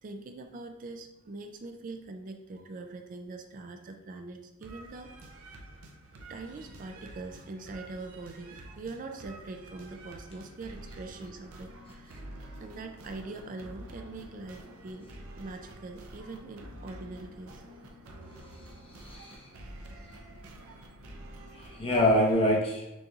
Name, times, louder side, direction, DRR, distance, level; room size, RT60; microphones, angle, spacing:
voice 1, 0.0-5.1 6.3-12.3 12.6-15.1 15.4-17.6, right 3 dB, 35° right, 5 dB, 0.4 m, -43 dB
sound 1, 4.6-22.6, right 1 dB, 70° right, 0.6 m, -48 dB
voice 2, 18.5-19.5 21.5-22.9, left 1 dB, 25° left, -3 dB, 1.0 m, -27 dB
6.3 x 3.0 x 2.4 m, 0.94 s
head